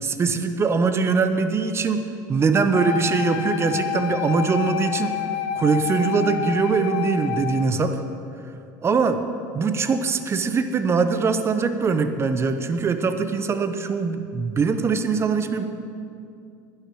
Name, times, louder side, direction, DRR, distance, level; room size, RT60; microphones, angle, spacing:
voice 1, 0.0-2.0 2.3-5.2 5.5-8.0 8.8-9.2 9.5-15.7, right 5 dB, 25° right, 9 dB, 1.0 m, -22 dB
Wind instrument woodwind instrument, 2.7-7.8, left 9 dB, 55° left, 1.0 m, -28 dB
11.5 x 10.5 x 6.3 m, 2.5 s
supercardioid pair, 100°, 10 cm